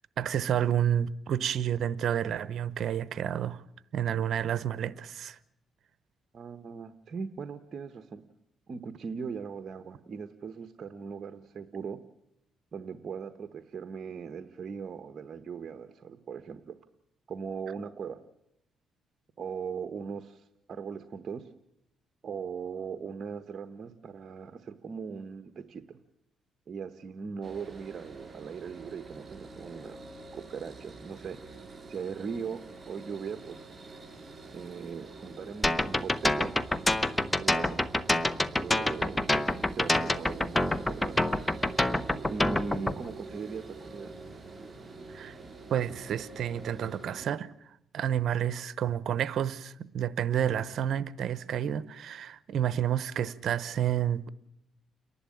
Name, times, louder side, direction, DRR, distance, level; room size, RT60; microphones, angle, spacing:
voice 1, 0.2-3.6 3.9-5.4 45.1-45.4 45.7-47.5 47.9-54.3, right 9 dB, 65° right, 0.9 m, -30 dB
voice 2, 6.3-8.2 8.7-12.0 12.7-16.7 17.3-18.2 19.4-21.5 22.2-26.0 26.7-30.0 30.3-31.4 31.9-33.7 34.5-36.6 37.4-37.8 38.5-39.3 39.7-41.3 42.3-44.2, right 6 dB, 50° right, 1.1 m, -39 dB
sound 1, 27.4-47.3, right 3 dB, 20° right, 3.0 m, -46 dB
sound 2, 35.6-42.9, left 1 dB, 15° left, 1.0 m, -26 dB
29.5 x 11.5 x 8.6 m
cardioid pair, 90°, 0 cm